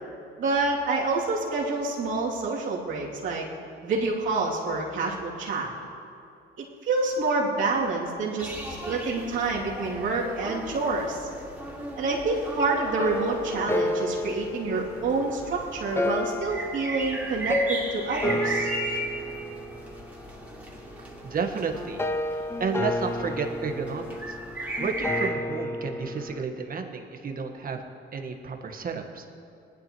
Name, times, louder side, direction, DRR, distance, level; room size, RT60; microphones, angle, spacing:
voice 1, 0.4-3.5 3.8-5.7 6.6-8.5 8.8-11.3 12.0-18.7, right 3 dB, 75° right, -5 dB, 2.8 m, -27 dB
sound 1, 8.4-25.3, right 1 dB, 5° right, 2.8 m, -37 dB
sound 2, 13.0-26.4, left 1 dB, 10° left, 0.6 m, -32 dB
voice 2, 21.2-22.0 22.6-24.4 24.8-27.8 28.1-29.2, right 5 dB, 45° right, 4 dB, 1.4 m, -31 dB
20.0 x 12.0 x 3.1 m, 2.6 s
cardioid pair, 90°, 20 cm